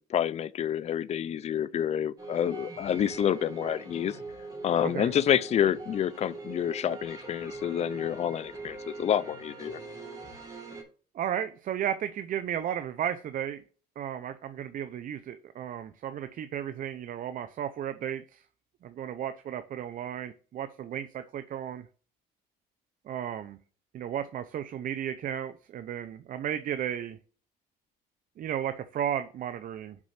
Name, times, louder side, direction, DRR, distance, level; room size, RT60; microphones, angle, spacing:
voice 1, 0.0-4.2 4.6-9.8, left 9 dB, 40° left, 0.5 m, -28 dB
sound 1, 2.2-10.8, right 3 dB, 20° right, 3.6 m, -42 dB
voice 2, 11.1-13.6 14.0-18.4 18.8-21.8 23.1-23.6 23.9-27.2 28.4-30.0, right 9 dB, 55° right, 0.7 m, -34 dB
6.2 x 5.4 x 5.8 m
cardioid pair, 110°, 17 cm